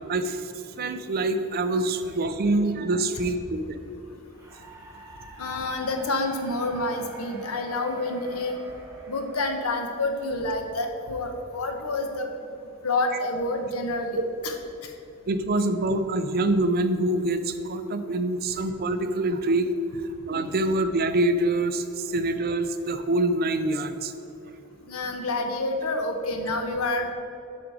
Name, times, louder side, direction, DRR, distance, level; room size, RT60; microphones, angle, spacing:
voice 1, 0.1-3.8 15.3-19.7 20.3-24.1, right 2 dB, 45° right, 9 dB, 0.5 m, -25 dB
sound 1, 4.3-10.5, right 1 dB, 15° right, 1.1 m, -46 dB
voice 2, 5.4-8.6 9.1-12.3 12.8-14.2 14.4-14.5 14.8-14.9 24.8-27.1, left 2 dB, 85° left, 4 dB, 0.9 m, -28 dB
8.4 x 5.1 x 4.7 m, 2.8 s
head